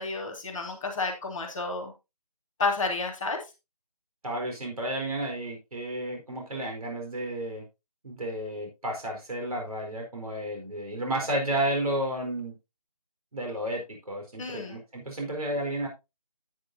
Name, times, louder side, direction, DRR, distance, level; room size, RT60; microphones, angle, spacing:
voice 1, 0.0-1.9 2.6-3.4 14.4-14.8, left 3 dB, 5° left, -9 dB, 0.6 m, -30 dB
voice 2, 4.2-7.6 8.0-12.6 13.3-15.9, right 1 dB, 65° right, 2 dB, 4.5 m, -32 dB
11.5 x 8.5 x 2.8 m, 0.25 s
figure-of-eight pair, 165°, 20 cm